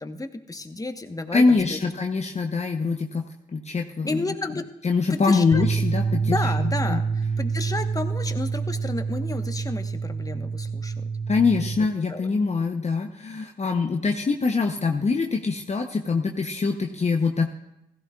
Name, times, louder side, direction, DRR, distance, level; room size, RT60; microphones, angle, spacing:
voice 1, 0.0-1.8 4.1-4.6 5.1-5.6 6.2-11.0 12.1-12.3, left 2 dB, 20° left, 7 dB, 1.2 m, -32 dB
voice 2, 1.3-3.2 3.5-4.1 4.8-7.0 11.3-17.5, left 4 dB, 35° left, 3 dB, 0.9 m, -24 dB
sound 1, 5.5-11.8, right 5 dB, 20° right, 1.1 m, -27 dB
15.5 x 14.0 x 2.4 m, 0.88 s
hypercardioid pair, 40°, 19 cm